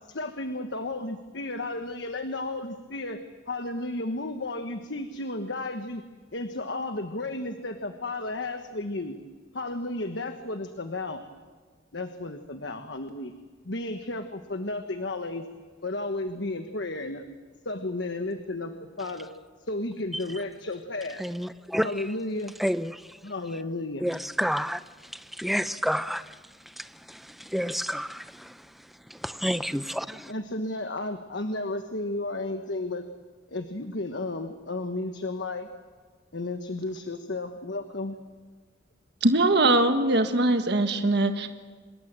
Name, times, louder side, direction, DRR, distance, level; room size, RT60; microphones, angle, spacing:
voice 1, 0.1-3.2 3.5-6.0 6.3-9.2 9.5-11.3 11.9-13.3 13.6-15.4 15.8-17.3 17.6-19.3 19.6-21.2 21.8-22.5 23.2-24.1 30.3-33.1 33.5-35.7 36.3-38.2, left 2 dB, 65° left, 1.3 m, -33 dB
voice 2, 21.2-21.9 22.6-23.0 24.0-24.8 25.1-26.3 26.8-28.6 29.1-30.3, equal, ahead, 0.6 m, -30 dB
voice 3, 39.2-41.5, right 2 dB, 60° right, 1.6 m, -22 dB
26.0 x 21.5 x 7.7 m
head